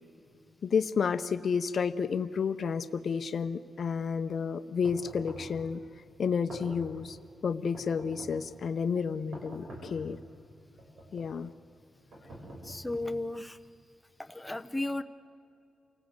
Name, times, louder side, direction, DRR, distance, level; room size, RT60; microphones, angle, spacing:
voice 1, 0.6-5.8 6.2-7.2 7.4-10.2 11.1-11.5, left 6 dB, 55° left, 12 dB, 0.7 m, -31 dB
sound 1, 4.8-5.6 6.3-7.0 7.7-8.5 9.3-10.1 10.8-11.4 12.1-13.0, right 1 dB, 65° right, 6.8 m, -46 dB
voice 2, 12.6-13.6 14.2-15.0, left 2 dB, 10° left, 9 dB, 0.8 m, -34 dB
29.0 x 19.0 x 8.0 m, 2.5 s
cardioid pair, 110°, 0 cm